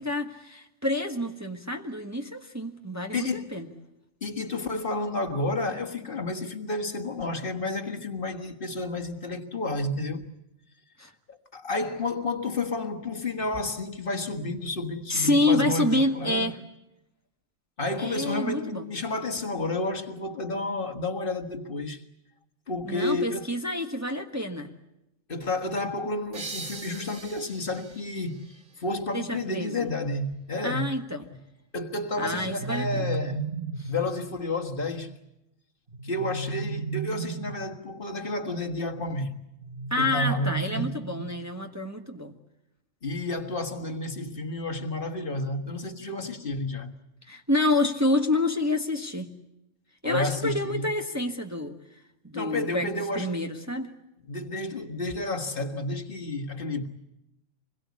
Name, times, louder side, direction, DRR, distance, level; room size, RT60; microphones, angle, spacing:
voice 1, 0.0-3.7 11.0-11.1 15.1-16.5 18.0-18.9 22.8-24.7 29.1-29.9 30.6-31.2 32.2-33.0 33.8-33.9 39.9-42.3 47.3-49.3 50.0-51.8 52.2-52.9 53.1-53.9, left 1 dB, 15° right, 1.4 m, -28 dB
voice 2, 3.1-3.6 4.2-10.3 11.3-16.5 17.8-22.0 22.7-23.5 25.3-30.9 31.3-31.4 31.7-33.4 33.9-35.2 36.0-39.3 40.0-41.1 43.0-46.9 50.0-50.9 52.3-53.4 54.3-56.9, left 2 dB, 45° left, 1.8 m, -31 dB
sound 1, 26.3-29.8, right 3 dB, 70° right, 2.5 m, -42 dB
sound 2, 32.2-34.0 35.9-37.8 39.6-41.5, right 4 dB, 40° right, 1.1 m, -34 dB
26.0 x 21.5 x 8.4 m
omnidirectional pair, 1.3 m